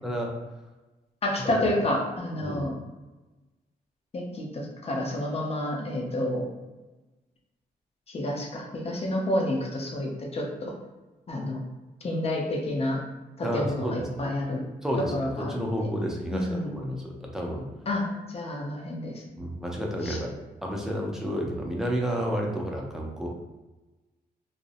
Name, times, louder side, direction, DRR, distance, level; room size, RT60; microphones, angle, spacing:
voice 1, 0.0-0.4 1.4-1.5 2.4-2.7 13.4-14.3 14.8-17.7 19.4-23.3, equal, 5° right, -1 dB, 0.5 m, -31 dB
voice 2, 1.2-2.7 4.1-6.4 8.1-10.7 11.3-11.6 12.0-13.0 13.4-14.7 15.1-15.5 16.3-16.7 17.9-19.2 20.0-20.2, left 1 dB, 40° left, 0 dB, 0.6 m, -29 dB
2.5 x 2.0 x 2.5 m, 1.2 s
cardioid pair, 85°, 16 cm